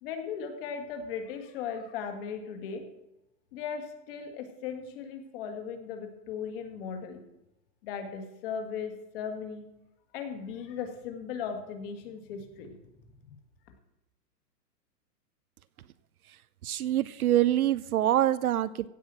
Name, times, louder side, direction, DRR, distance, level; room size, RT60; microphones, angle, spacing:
voice 1, 0.0-2.8 3.5-7.2 7.8-9.7 10.1-12.7 13.2-13.4, left 6 dB, 35° left, 6 dB, 2.0 m, -37 dB
voice 2, 16.6-18.9, right 12 dB, 60° right, 16 dB, 0.6 m, -25 dB
16.0 x 5.7 x 7.7 m, 0.92 s
hypercardioid pair, 165°, 50 cm